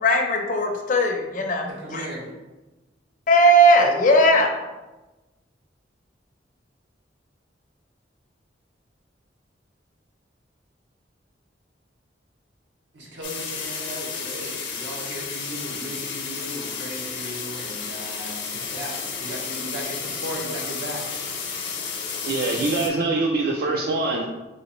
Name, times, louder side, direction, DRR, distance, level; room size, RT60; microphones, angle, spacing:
voice 1, 0.0-2.1 3.3-4.5, right 1 dB, 45° left, 3 dB, 0.5 m, -18 dB
voice 2, 1.7-2.3 12.9-21.0, equal, 70° right, -3 dB, 1.1 m, -36 dB
sound 1, 13.2-22.9, left 5 dB, 80° left, 0.8 m, -32 dB
voice 3, 22.2-24.3, right 3 dB, 55° right, -1 dB, 0.4 m, -24 dB
4.2 x 3.1 x 2.9 m, 1.1 s
head